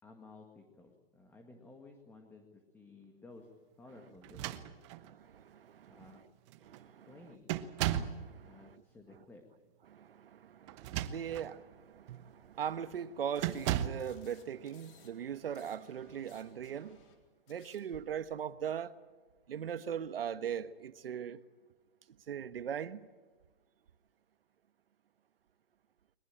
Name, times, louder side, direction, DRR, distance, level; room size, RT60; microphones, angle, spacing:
voice 1, 0.0-3.5 3.8-4.8 5.9-6.2 7.1-7.5 8.4-9.4, left 3 dB, 5° left, 1.8 m, -55 dB
sound 1, 4.2-5.1 6.0-6.1 6.5-6.8 7.5-8.2 10.7-11.5 12.1-12.3 13.4-14.1, right 12 dB, 30° right, 1.1 m, -36 dB
voice 2, 5.0-6.2 6.6-7.1 7.8-8.8 9.9-17.0 17.5-18.9 19.5-21.4 22.3-23.1, right 8 dB, 75° right, 1.4 m, -40 dB
sound 2, 13.3-15.1 15.4-18.0, left 7 dB, 30° left, 4.1 m, -62 dB
22.5 x 21.0 x 9.0 m
hypercardioid pair, 155°, 29 cm